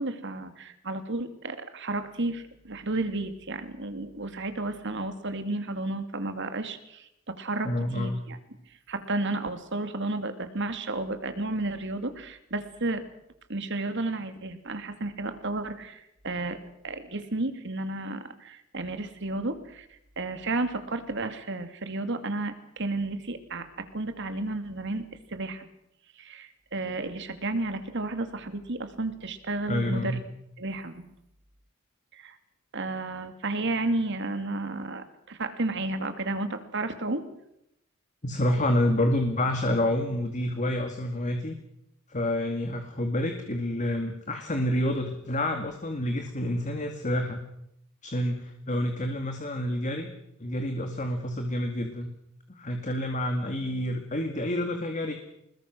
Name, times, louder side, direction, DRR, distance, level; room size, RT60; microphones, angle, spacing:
voice 1, 0.0-8.4 8.9-13.0 13.5-16.6 16.8-19.9 20.2-25.7 26.2-30.2 30.6-31.0 32.1-32.4 32.7-37.2, right 2 dB, 60° right, 8 dB, 2.5 m, -32 dB
voice 2, 7.6-8.2 29.7-30.2 38.2-41.6 42.1-47.4 48.0-50.1 50.4-52.1 52.6-55.1, left 1 dB, 35° left, 5 dB, 2.2 m, -28 dB
26.5 x 21.0 x 6.2 m, 0.79 s
head